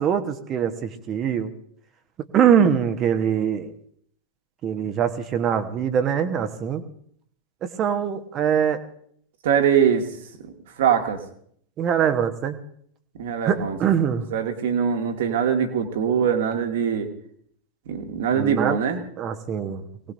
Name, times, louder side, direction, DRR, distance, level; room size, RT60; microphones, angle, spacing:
voice 1, 0.0-1.5 2.3-3.8 4.6-6.8 7.6-8.8 11.8-12.6 13.4-14.3 18.3-18.8 19.2-19.8, right 8 dB, 30° right, 9 dB, 1.3 m, -23 dB
voice 2, 9.4-10.1 10.8-11.2 13.2-13.8 14.3-17.1 17.9-19.0, right 8 dB, 55° right, 4 dB, 2.0 m, -22 dB
23.5 x 18.5 x 2.7 m, 0.64 s
figure-of-eight pair, 90°, 0 cm